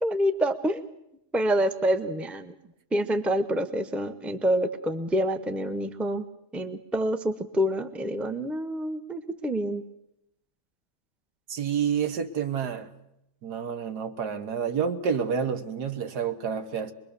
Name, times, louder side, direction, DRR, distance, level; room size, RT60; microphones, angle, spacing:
voice 1, 0.0-0.8 1.3-2.5 2.9-6.3 6.5-9.8, equal, ahead, 0.7 m, -27 dB
voice 2, 11.5-12.9 13.4-16.9, right 7 dB, 85° right, 1.8 m, -29 dB
24.5 x 21.5 x 6.8 m
omnidirectional pair, 1.7 m